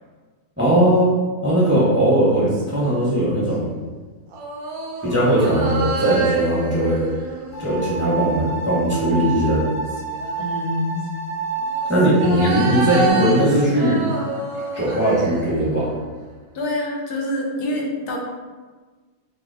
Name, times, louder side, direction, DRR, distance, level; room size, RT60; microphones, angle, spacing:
voice 1, 0.6-1.1 1.4-3.6 5.0-7.0 7.6-9.6 11.9-14.0 14.7-15.9, right 1 dB, 10° right, -7 dB, 0.6 m, -19 dB
sound 1, 2.2-3.4 4.3-8.7 9.5-10.7 11.6-16.2 16.5-16.6, right 4 dB, 70° right, 1.0 m, -29 dB
sound 2, 7.5-13.1, right 4 dB, 40° left, 0.7 m, -29 dB
voice 2, 10.4-11.1 12.4-12.6 16.5-18.2, left 1 dB, 80° left, -1 dB, 1.1 m, -26 dB
3.0 x 2.8 x 3.9 m, 1.4 s
omnidirectional pair, 1.7 m